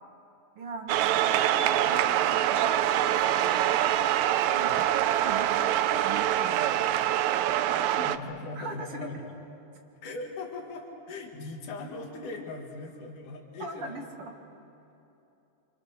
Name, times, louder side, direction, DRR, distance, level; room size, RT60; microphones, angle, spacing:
voice 1, 0.6-3.8 4.5-4.9 5.2-7.2 8.6-9.1 13.6-14.3, right 3 dB, 50° right, 3 dB, 2.2 m, -40 dB
sound 1, 0.9-8.2, right 12 dB, 75° right, 1.8 m, -25 dB
voice 2, 7.7-9.2 10.0-14.1, left 3 dB, 75° left, 0 dB, 3.4 m, -40 dB
27.0 x 26.0 x 6.6 m, 2.9 s
omnidirectional pair, 3.6 m